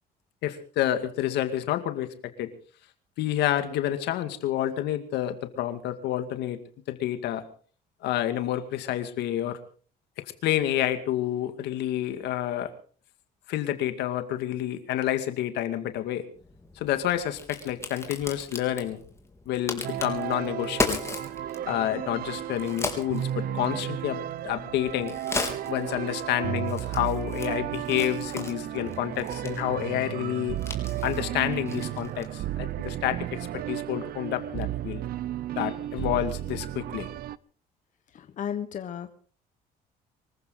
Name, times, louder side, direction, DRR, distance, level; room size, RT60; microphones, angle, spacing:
voice 1, 0.4-2.5 3.2-6.6 6.9-7.4 8.0-9.6 10.4-12.7 13.5-16.3 16.8-19.0 19.5-21.0 21.7-25.2 25.7-30.6 31.0-35.0 35.6-37.1, left 12 dB, 80° left, 9 dB, 2.2 m, -29 dB
Crack, 16.4-32.4, left 3 dB, 15° left, 3.7 m, -37 dB
sound 1, 19.8-37.4, right 12 dB, 65° right, 0.7 m, -33 dB
voice 2, 38.1-39.1, left 8 dB, 50° left, 9 dB, 1.3 m, -34 dB
24.5 x 14.5 x 4.0 m, 0.43 s
cardioid pair, 110°, 17 cm